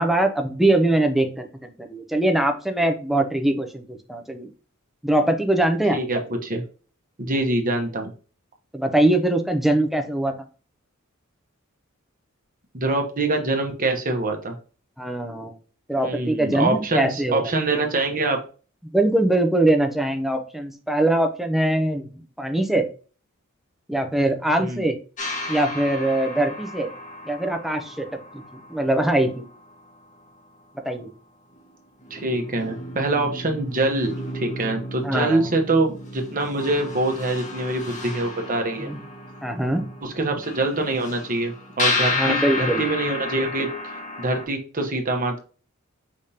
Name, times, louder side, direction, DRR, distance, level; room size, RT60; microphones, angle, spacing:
voice 1, 0.0-4.5 5.0-6.0 8.7-10.3 15.0-15.6 15.9-17.5 18.9-22.9 23.9-25.0 25.5-26.9 27.3-28.1 28.3-28.4 28.7-29.4 30.8-31.1 35.0-35.5 38.8-39.0 39.4-39.9 42.1-42.8, right 1 dB, ahead, 4 dB, 0.6 m, -22 dB
voice 2, 5.9-6.6 7.2-8.1 12.7-14.5 16.0-18.4 24.6-24.9 32.1-38.9 40.0-43.7 44.2-45.4, right 2 dB, 40° right, 3 dB, 1.0 m, -24 dB
sound 1, 25.2-30.0 31.5-31.6 32.0-44.5, left 2 dB, 35° left, 1.1 m, -32 dB
4.9 x 3.5 x 2.8 m, 0.37 s
head